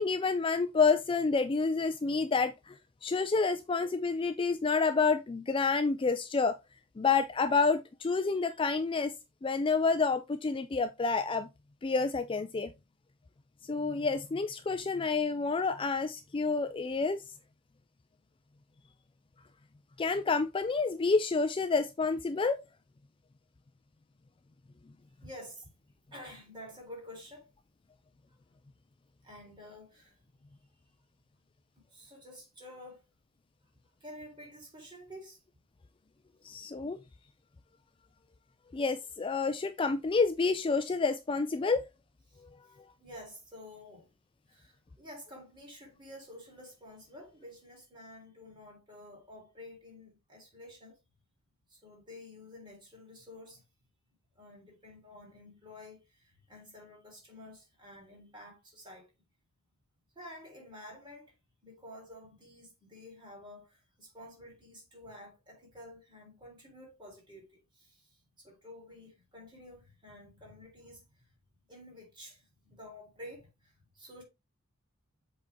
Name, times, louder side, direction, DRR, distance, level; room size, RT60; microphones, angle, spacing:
voice 1, 0.0-6.6 7.0-9.1 9.4-11.5 11.8-12.7 13.6-17.2 20.0-22.6 36.4-37.0 38.7-41.8, left 4 dB, 25° left, 0.3 m, -29 dB
voice 2, 25.2-25.7 26.1-27.5 29.2-30.2 31.9-33.1 34.0-35.4 42.3-44.1 44.5-51.0 51.7-53.6 54.4-59.1 60.2-61.4 61.6-71.2 71.7-74.2, left 1 dB, 20° right, 3.7 m, -50 dB
7.7 x 4.2 x 3.5 m
head